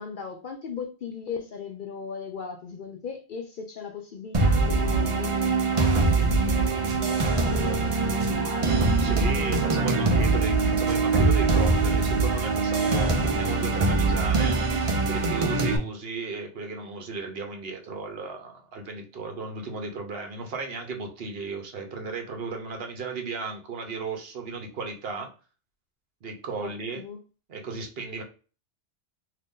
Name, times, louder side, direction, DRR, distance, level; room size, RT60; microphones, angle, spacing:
voice 1, 0.0-10.4 26.6-27.2, left 6 dB, 60° left, 0.6 m, -38 dB
sound 1, 4.3-15.8, right 3 dB, 40° right, 0.5 m, -23 dB
Drum, 6.2-6.3 6.9-7.1 7.5-7.7 8.2-8.5 8.9-9.0 9.5-9.8 10.2-10.3 10.9-11.4, right 3 dB, 85° right, 0.9 m, -34 dB
voice 2, 9.0-14.6 15.1-25.3 26.2-27.0 27.5-28.2, right 4 dB, 60° right, 1.0 m, -35 dB
2.8 x 2.6 x 3.5 m
omnidirectional pair, 1.2 m